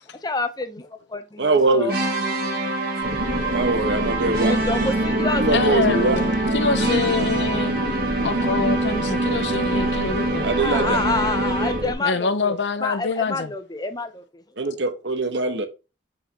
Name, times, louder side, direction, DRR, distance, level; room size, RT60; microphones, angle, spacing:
voice 1, 0.2-2.0 4.4-5.5 10.6-14.2, left 3 dB, 20° left, 0.7 m, -28 dB
voice 2, 1.4-1.9 3.5-4.5 5.4-6.2 10.4-11.0 14.6-15.7, right 3 dB, 75° right, 1.2 m, -22 dB
sound 1, 1.9-12.0, right 2 dB, 55° right, 1.8 m, -25 dB
sound 2, 3.0-11.9, right 1 dB, 90° right, 1.8 m, -27 dB
voice 3, 5.5-7.8 8.2-10.5 12.0-13.5, left 4 dB, 70° left, 0.7 m, -25 dB
7.4 x 5.1 x 2.9 m
head